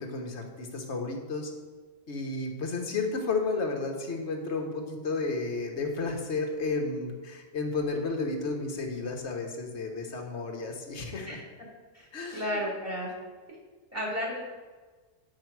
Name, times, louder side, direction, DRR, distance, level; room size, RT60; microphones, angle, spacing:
voice 1, 0.0-1.5 2.1-11.4 12.1-12.6, left 3 dB, 70° left, 2 dB, 1.4 m, -32 dB
voice 2, 12.3-13.1 13.9-14.4, equal, 10° right, -4 dB, 1.9 m, -32 dB
8.9 x 4.9 x 4.6 m, 1.4 s
omnidirectional pair, 1.2 m